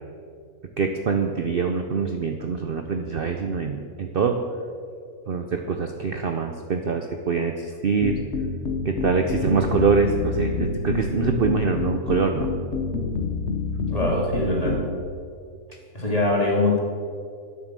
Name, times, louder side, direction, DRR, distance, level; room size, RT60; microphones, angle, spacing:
voice 1, 0.8-4.4 5.3-8.1 8.8-12.5, right 5 dB, 50° right, 5 dB, 0.8 m, -24 dB
sound 1, 8.0-14.9, left 4 dB, 55° left, 1.2 m, -28 dB
voice 2, 13.9-14.8 15.9-16.8, left 2 dB, 25° left, -2 dB, 2.4 m, -22 dB
9.9 x 8.1 x 7.5 m, 2.2 s
omnidirectional pair, 1.5 m